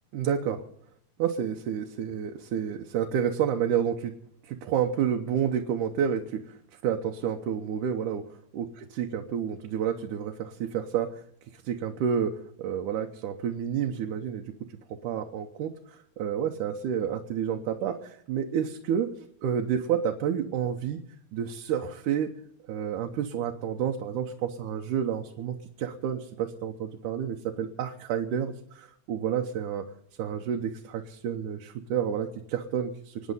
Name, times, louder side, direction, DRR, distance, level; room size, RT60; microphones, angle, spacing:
voice 1, 0.1-0.6 1.2-4.1 4.4-6.6 6.8-8.2 8.5-11.1 11.5-14.4 14.9-19.1 19.4-21.0 21.3-22.3 22.7-29.9 30.2-33.3, right 8 dB, 80° right, 3 dB, 2.5 m, -30 dB
26.5 x 9.4 x 5.5 m, 0.66 s
omnidirectional pair, 3.6 m